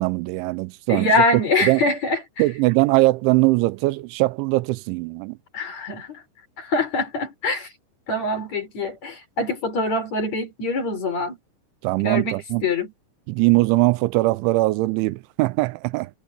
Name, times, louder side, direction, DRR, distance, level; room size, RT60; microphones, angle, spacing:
voice 1, 0.0-1.1 1.6-1.8 2.4-5.4 11.8-12.7 13.3-16.1, right 21 dB, 85° right, 3.0 m, -21 dB
voice 2, 0.9-2.5 5.5-6.2 6.6-7.7 8.1-11.4 12.0-12.9, left 2 dB, 35° left, 5.5 m, -24 dB
omnidirectional pair, 5.3 m